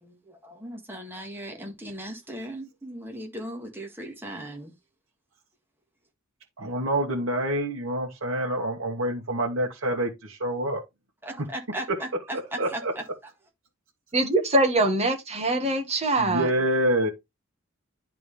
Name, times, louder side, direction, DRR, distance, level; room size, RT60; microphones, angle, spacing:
voice 1, 0.0-4.7 11.2-13.0, right 1 dB, 10° right, 1.6 m, -37 dB
voice 2, 6.6-10.8 11.9-12.0 12.3-12.9 16.2-17.1, right 1 dB, 70° right, 1.5 m, -27 dB
voice 3, 14.1-16.5, right 2 dB, 30° right, 1.6 m, -23 dB
11.0 x 3.8 x 3.2 m
head